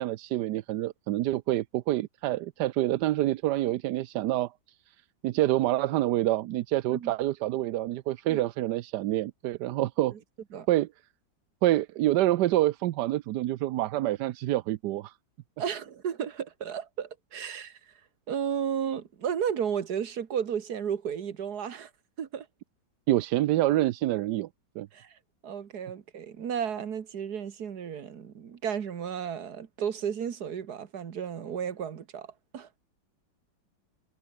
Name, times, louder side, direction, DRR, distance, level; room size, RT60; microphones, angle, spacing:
voice 1, 0.0-4.5 5.2-10.1 10.7-10.9 11.6-15.1 23.1-24.5 24.8-24.9, right 15 dB, 75° right, 1.1 m, -27 dB
voice 2, 15.6-17.9 18.3-21.9 22.2-22.5 24.9-25.2 25.4-32.7, right 8 dB, 55° right, 1.9 m, -33 dB
omnidirectional pair, 2.1 m